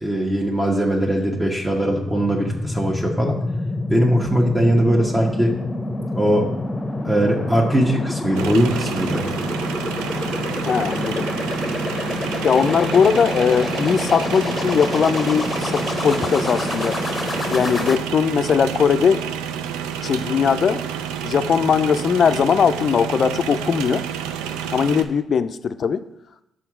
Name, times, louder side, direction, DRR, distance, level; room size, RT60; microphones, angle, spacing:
voice 1, 0.0-3.3 3.9-5.5 6.1-6.5 7.0-9.3, right 1 dB, 20° right, -1 dB, 1.2 m, -20 dB
sound 1, 1.5-18.0, left 2 dB, 30° left, 0.8 m, -27 dB
sound 2, 8.3-25.0, right 8 dB, 85° right, 0.3 m, -29 dB
voice 2, 10.7-11.3 12.4-17.0 17.5-19.3 20.0-20.8 21.2-24.0 24.7-26.0, left 6 dB, 60° left, 12 dB, 0.4 m, -19 dB
5.9 x 3.8 x 6.0 m, 0.84 s
hypercardioid pair, 50°, 0 cm